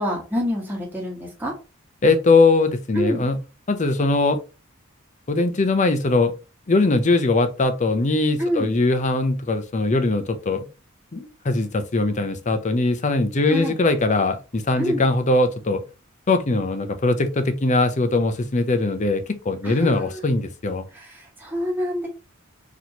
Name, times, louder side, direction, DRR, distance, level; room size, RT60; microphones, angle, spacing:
voice 1, 0.0-1.5 2.9-3.2 8.4-8.7 13.5-13.8 14.8-15.0 19.6-20.2 20.9-22.1, equal, 10° right, 1.3 m, -27 dB
voice 2, 2.0-3.4 3.7-4.4 5.3-6.3 6.7-10.7 11.1-15.8 16.3-20.8, left 3 dB, 35° left, 0.6 m, -21 dB
4.2 x 3.0 x 2.9 m
head